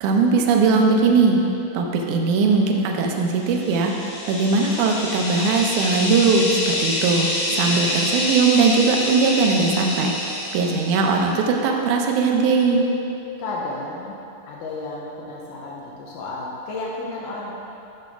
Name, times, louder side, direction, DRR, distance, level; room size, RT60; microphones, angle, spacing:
voice 1, 0.0-1.4 1.7-3.9 4.3-7.3 7.6-12.8, right 4 dB, 80° right, 1 dB, 2.1 m, -19 dB
sound 1, 3.4-11.2, left 1 dB, 60° left, 2.6 m, -27 dB
voice 2, 7.5-7.8 13.4-14.2 14.5-17.5, left 2 dB, 85° left, -4 dB, 2.4 m, -32 dB
8.3 x 3.4 x 5.9 m, 2.8 s
omnidirectional pair, 3.7 m